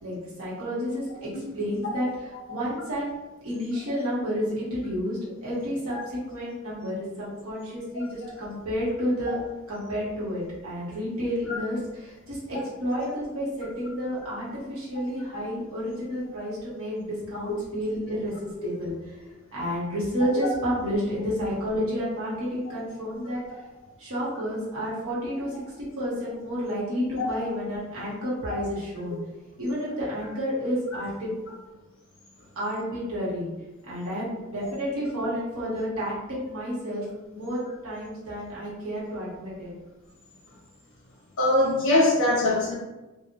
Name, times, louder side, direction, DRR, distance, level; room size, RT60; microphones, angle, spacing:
voice 1, 0.0-3.1 3.4-9.4 9.7-19.2 19.5-23.4 24.0-25.6 26.0-29.2 29.6-31.4 32.5-33.5 33.9-37.0 37.3-39.7, equal, 90° right, -7 dB, 0.9 m, -30 dB
voice 2, 41.4-42.7, left 2 dB, 65° left, -5 dB, 0.7 m, -21 dB
2.9 x 2.0 x 2.5 m, 1.1 s
head